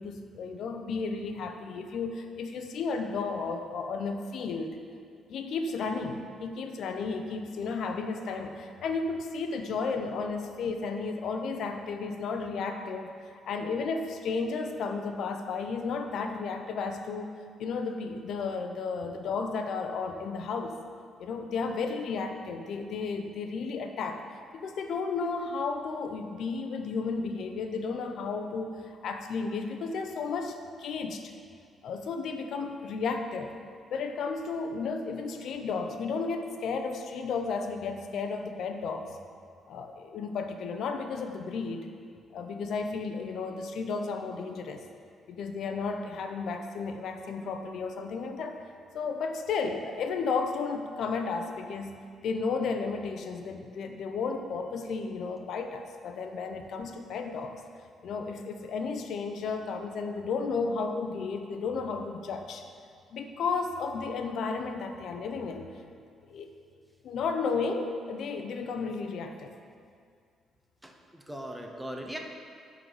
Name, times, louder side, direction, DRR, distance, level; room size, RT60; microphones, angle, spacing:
voice 1, 0.0-4.8 5.3-20.8 21.2-24.2 24.5-31.3 31.8-33.5 33.9-39.1 39.7-41.9 42.3-44.8 45.3-48.6 48.9-52.0 52.2-57.6 58.0-62.7 63.1-65.8 66.3-66.5 67.0-69.5, left 4 dB, 55° left, 6 dB, 0.5 m, -33 dB
voice 2, 70.8-72.2, right 1 dB, 5° right, 2 dB, 0.6 m, -39 dB
9.9 x 3.9 x 4.7 m, 2.2 s
cardioid pair, 175°, 0 cm